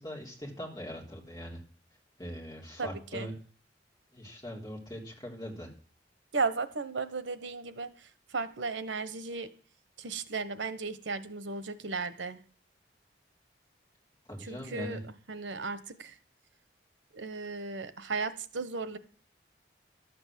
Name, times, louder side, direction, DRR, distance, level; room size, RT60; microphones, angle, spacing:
voice 1, 0.0-1.6 2.2-3.3 4.1-5.7 14.3-15.0, equal, 20° left, -1 dB, 3.4 m, -41 dB
voice 2, 2.8-3.3 6.3-9.5 10.0-12.4 14.4-15.0 15.3-16.1 17.1-19.0, right 4 dB, 90° right, 13 dB, 1.0 m, -35 dB
12.0 x 8.0 x 7.4 m, 0.39 s
head